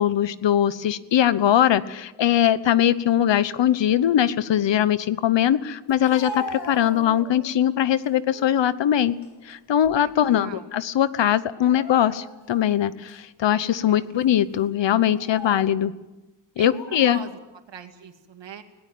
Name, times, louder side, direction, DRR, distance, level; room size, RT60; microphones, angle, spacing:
voice 1, 0.0-9.1 9.5-15.9 16.6-17.2, left 10 dB, 80° left, 16 dB, 1.1 m, -21 dB
Speech, 5.9-7.5 8.0-8.6 9.1-10.3 10.5-10.7 11.5-12.5 13.1-13.2 14.0-14.3 15.0-15.7 16.6-17.3, left 2 dB, 65° left, 4.9 m, -38 dB
voice 2, 9.9-10.7 13.9-14.0 16.6-17.4 17.7-18.6, right 6 dB, 80° right, 6 dB, 2.4 m, -41 dB
21.0 x 18.5 x 9.2 m, 1.0 s
wide cardioid pair, 120°, 43 cm